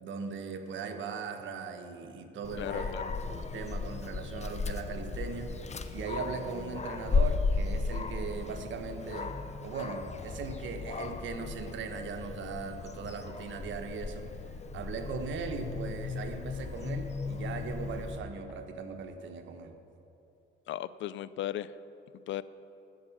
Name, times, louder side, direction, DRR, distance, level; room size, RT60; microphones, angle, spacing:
voice 1, 0.0-3.0 3.3-9.3 9.6-14.3 14.7-19.8, right 5 dB, 75° right, 6 dB, 1.2 m, -39 dB
Dog, 2.4-18.2, left 4 dB, 35° left, 0.8 m, -35 dB
voice 2, 2.6-3.1 20.7-21.7 22.3-22.4, left 12 dB, 75° left, 17 dB, 0.4 m, -36 dB
12.0 x 8.1 x 7.2 m, 2.9 s
cardioid pair, 90°, 20 cm